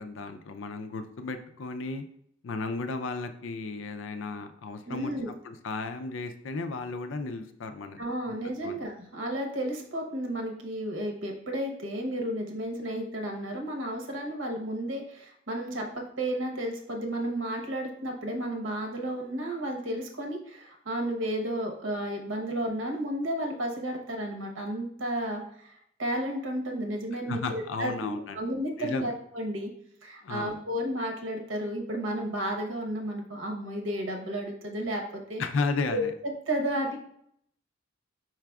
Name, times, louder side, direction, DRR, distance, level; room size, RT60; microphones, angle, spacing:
voice 1, 0.0-2.0 2.4-8.0 8.3-8.4 8.6-8.8 27.3-28.4 28.8-29.1 30.2-30.5 35.4-36.1, left 3 dB, 80° left, 8 dB, 0.5 m, -34 dB
voice 2, 4.9-5.3 8.0-29.7 30.0-35.4 35.9-36.1 36.5-37.0, right 1 dB, 85° right, 1 dB, 1.0 m, -32 dB
4.9 x 4.6 x 2.3 m, 0.70 s
head